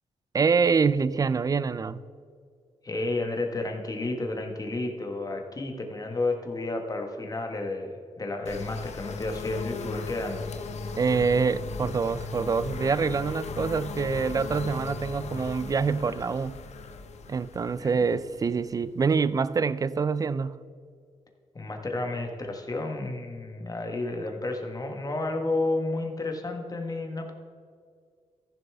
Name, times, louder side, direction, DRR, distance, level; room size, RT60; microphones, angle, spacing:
voice 1, 0.3-2.0 11.0-16.5 17.3-20.6, right 5 dB, 30° right, 17 dB, 0.4 m, -25 dB
voice 2, 2.8-10.5 17.8-17.9 21.5-27.3, left 2 dB, 30° left, 3 dB, 1.4 m, -31 dB
sound 1, 8.5-19.1, left 4 dB, 65° left, 0.8 m, -37 dB
15.0 x 7.0 x 3.5 m, 2.2 s
cardioid pair, 90°, 12 cm